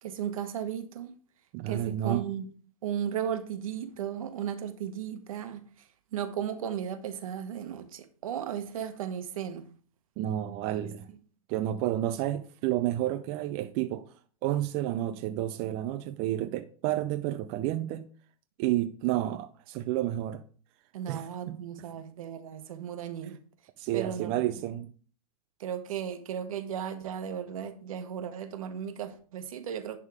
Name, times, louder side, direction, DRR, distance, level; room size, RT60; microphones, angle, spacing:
voice 1, 0.0-1.1 1.7-2.5 2.8-5.6 6.1-9.7 20.9-23.4 23.9-24.4 25.6-30.0, right 9 dB, 70° right, 1.2 m, -35 dB
voice 2, 1.5-2.2 10.2-11.1 11.5-14.0 14.4-18.1 18.6-20.4 21.1-21.6 23.8-24.9, right 13 dB, 35° right, 0.5 m, -30 dB
10.5 x 3.7 x 4.8 m
hypercardioid pair, 145°, 18 cm